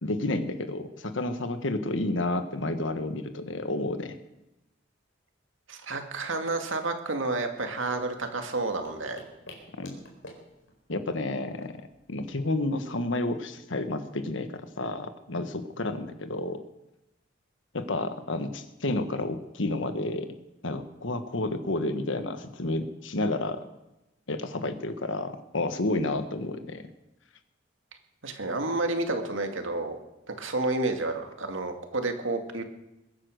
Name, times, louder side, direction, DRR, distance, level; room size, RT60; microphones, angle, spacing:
voice 1, 0.0-4.2 9.8-10.0 10.9-11.8 12.1-16.6 17.7-20.3 20.6-23.6 24.3-26.8, left 2 dB, 70° left, 9 dB, 1.4 m, -30 dB
voice 2, 5.7-9.2 28.2-30.0 30.3-32.6, right 2 dB, 85° right, 5 dB, 2.2 m, -30 dB
sound 1, 7.5-12.7, left 1 dB, 85° left, 4.2 m, -51 dB
22.0 x 9.9 x 6.5 m, 0.96 s
head